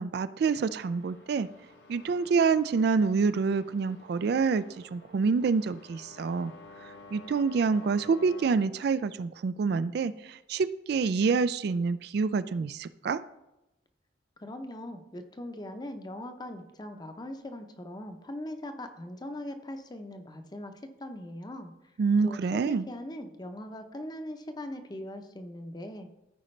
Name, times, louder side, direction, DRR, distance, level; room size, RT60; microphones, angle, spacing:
voice 1, 0.0-1.5 1.9-4.6 4.9-6.5 7.1-13.2 22.0-22.9, right 5 dB, 60° right, 14 dB, 0.3 m, -27 dB
sound 1, 0.5-8.5, left 2 dB, 65° left, 1.7 m, -51 dB
voice 2, 14.4-20.7 21.0-21.7 22.2-26.1, left 1 dB, 20° left, 7 dB, 0.7 m, -40 dB
14.0 x 5.0 x 3.2 m, 0.94 s
head